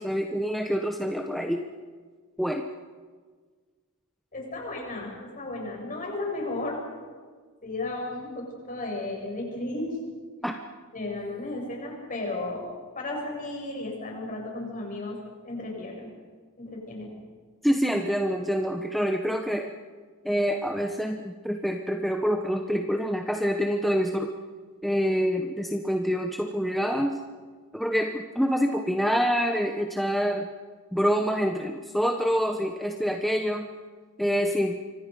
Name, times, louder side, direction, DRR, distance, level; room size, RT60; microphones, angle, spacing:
voice 1, 0.0-1.6 2.4-2.7 10.4-10.6 17.6-19.7 20.2-24.3 24.8-27.2 27.7-30.5 30.9-33.7 34.2-34.8, equal, ahead, 3 dB, 0.9 m, -26 dB
voice 2, 4.3-6.8 7.6-10.0 10.9-12.7 13.0-15.2 15.4-16.1 16.6-17.1, left 2 dB, 35° left, -1 dB, 7.1 m, -34 dB
27.0 x 25.0 x 5.4 m, 1.5 s
head